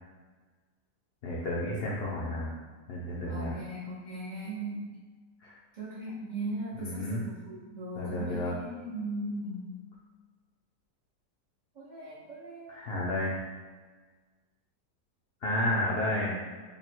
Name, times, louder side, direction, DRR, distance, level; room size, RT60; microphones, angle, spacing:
voice 1, 1.2-2.5 2.9-3.5 5.4-5.5 6.7-7.2 7.9-8.6 12.7-13.4 15.4-16.3, left 1 dB, 90° left, -5 dB, 0.5 m, -31 dB
voice 2, 3.3-5.0 5.8-7.2 7.5-9.8 11.8-12.8, right 1 dB, 80° right, -8 dB, 0.4 m, -38 dB
3.7 x 2.0 x 4.3 m, 1.4 s
omnidirectional pair, 1.8 m